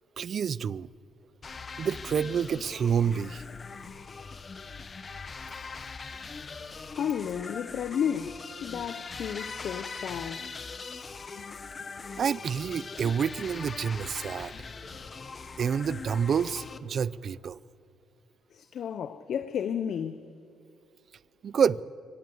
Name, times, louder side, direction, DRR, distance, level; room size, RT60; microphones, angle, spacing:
voice 1, 0.2-0.9 1.8-3.4 12.2-14.5 15.6-17.6 21.4-21.8, right 7 dB, 55° right, 0.5 m, -28 dB
sound 1, 1.4-16.8, left 4 dB, 35° left, 1.2 m, -41 dB
voice 2, 7.0-10.5 11.4-11.5 18.5-20.3, left 8 dB, 65° left, 0.8 m, -32 dB
sound 2, 11.7-17.4, equal, 5° right, 4.0 m, -58 dB
24.5 x 18.5 x 7.9 m
cardioid pair, 90°, 0 cm